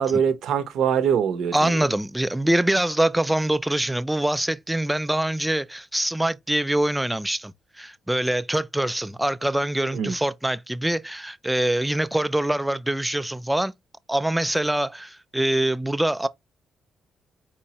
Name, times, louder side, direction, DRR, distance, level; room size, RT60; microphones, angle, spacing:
voice 1, 0.0-1.9 9.9-10.1, right 7 dB, 75° right, 0.7 m, -23 dB
voice 2, 1.5-13.7 14.1-16.3, right 1 dB, 5° right, 0.3 m, -24 dB
4.4 x 3.0 x 2.8 m
cardioid pair, 90°, 0 cm